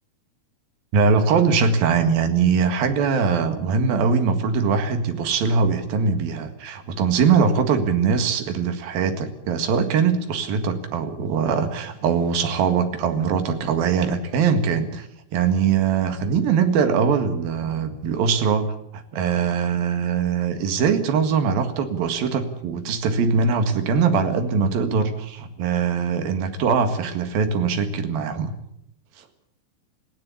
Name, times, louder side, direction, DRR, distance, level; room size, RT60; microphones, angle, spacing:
voice 1, 0.9-28.5 29.2-29.3, right 6 dB, 70° right, 7 dB, 3.6 m, -22 dB
20.0 x 16.5 x 8.4 m, 0.77 s
omnidirectional pair, 4.4 m